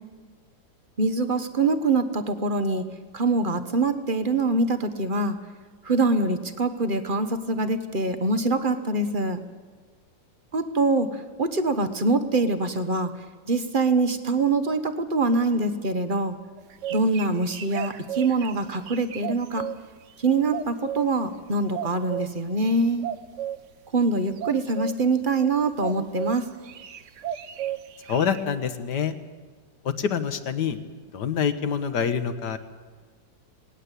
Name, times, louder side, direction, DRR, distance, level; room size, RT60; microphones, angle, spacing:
voice 1, 1.0-2.8 3.1-5.4 5.8-9.4 10.5-13.1 13.4-16.3 16.9-19.7 20.2-23.1 23.9-26.5, right 3 dB, 35° right, 10 dB, 1.0 m, -24 dB
sound 1, 16.6-19.8 20.5-21.2 21.7-22.3 23.0-23.6 24.4-25.0 25.8-26.4 26.6-28.4, right 11 dB, 55° right, 0.9 m, -33 dB
voice 2, 28.1-29.1 29.8-30.8 31.1-32.6, left 7 dB, 65° left, 10 dB, 1.6 m, -26 dB
19.0 x 18.0 x 8.3 m, 1.4 s
omnidirectional pair, 2.0 m